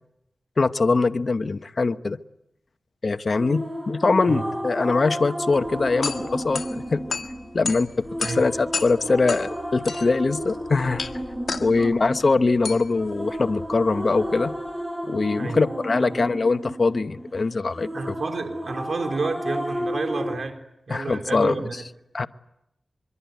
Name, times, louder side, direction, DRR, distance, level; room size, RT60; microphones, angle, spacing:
voice 1, 0.6-2.2 3.0-7.0 7.5-11.0 11.6-14.5 15.1-18.1 20.9-21.6 22.1-22.3, left 3 dB, 60° left, 10 dB, 0.9 m, -22 dB
sound 1, 3.3-20.4, equal, 20° right, 6.3 m, -33 dB
sound 2, 5.6-14.7, left 4 dB, 75° left, 1.7 m, -34 dB
voice 2, 17.9-20.6 20.9-21.8, right 3 dB, 70° right, 5 dB, 3.7 m, -30 dB
23.5 x 23.5 x 9.3 m, 0.83 s
cardioid pair, 45°, 0 cm